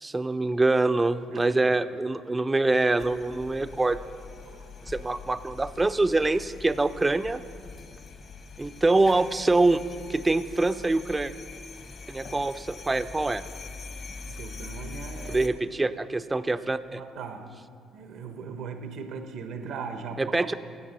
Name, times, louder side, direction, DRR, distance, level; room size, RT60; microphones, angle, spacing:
voice 1, 0.0-4.0 4.9-7.4 8.6-9.8 10.1-11.3 12.1-13.4 15.3-17.0 20.2-20.5, right 2 dB, 20° right, 13 dB, 0.4 m, -25 dB
voice 2, 1.3-1.8 4.4-4.7 14.3-15.5 15.8-16.2 16.9-17.5 17.9-20.5, right 5 dB, 75° right, 8 dB, 0.9 m, -39 dB
sound 1, 3.0-15.5, left 4 dB, 50° left, 1.0 m, -43 dB
11.0 x 7.9 x 5.5 m, 2.3 s
supercardioid pair, 80°, 0 cm